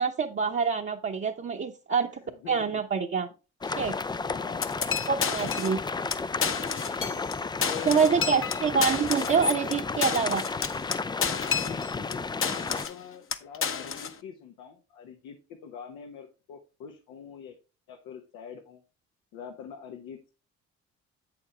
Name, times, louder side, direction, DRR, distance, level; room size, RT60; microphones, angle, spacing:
voice 1, 0.0-3.3 3.6-3.9 5.1-5.8 7.9-10.4, right 6 dB, 40° right, -1 dB, 1.0 m, -26 dB
voice 2, 2.2-2.8 4.2-4.9 7.0-8.5 11.4-17.6 17.9-18.8 19.3-20.3, left 7 dB, 85° left, 3 dB, 1.2 m, -44 dB
sound 1, 3.6-12.9, left 4 dB, 15° left, 0.4 m, -33 dB
sound 2, 4.6-5.8 6.1-6.2 6.4-7.3 7.6-12.1 12.4-13.0 13.3-14.1, left 6 dB, 45° left, 0.9 m, -30 dB
8.1 x 7.1 x 3.4 m, 0.31 s
supercardioid pair, 65°, 31 cm